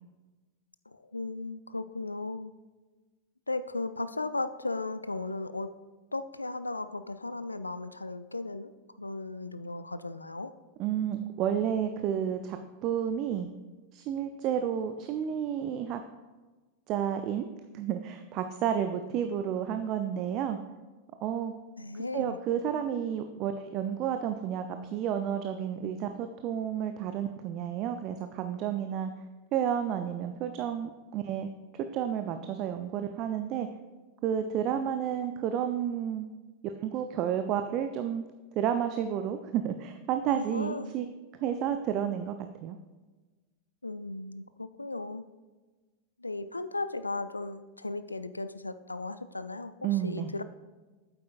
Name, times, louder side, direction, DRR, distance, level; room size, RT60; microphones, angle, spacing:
voice 1, 0.9-2.5 3.5-5.7 6.1-8.7 9.0-10.5 21.8-22.4 40.3-40.9 43.8-45.2 46.2-50.4, left 2 dB, 80° left, 13 dB, 0.3 m, -36 dB
voice 2, 10.8-13.5 13.9-16.0 16.9-17.5 17.7-20.6 21.2-21.5 21.9-29.1 29.5-31.5 31.7-33.7 34.2-36.3 36.6-38.2 38.6-41.1 41.3-42.4 42.6-42.8 49.8-50.3, right 9 dB, 40° right, 8 dB, 0.4 m, -31 dB
8.4 x 8.2 x 2.5 m, 1.3 s
figure-of-eight pair, 90°, 0 cm